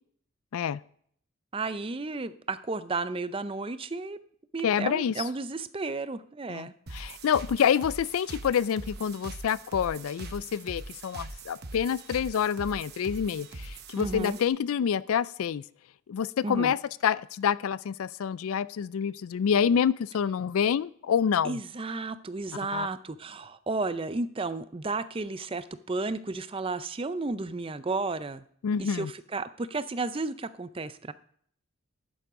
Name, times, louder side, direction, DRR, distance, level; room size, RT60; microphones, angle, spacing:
voice 1, 1.5-4.2 4.5-6.7 14.0-14.4 16.4-16.7 21.4-28.4 28.8-31.1, right 3 dB, 25° right, 13 dB, 0.5 m, -33 dB
voice 2, 4.6-5.1 6.5-15.6 16.1-21.6 22.7-22.9 28.6-29.1, left 7 dB, 75° left, 19 dB, 0.3 m, -27 dB
sound 1, 6.9-14.5, right 2 dB, 45° right, 1.0 m, -42 dB
12.0 x 9.3 x 3.7 m, 0.62 s
head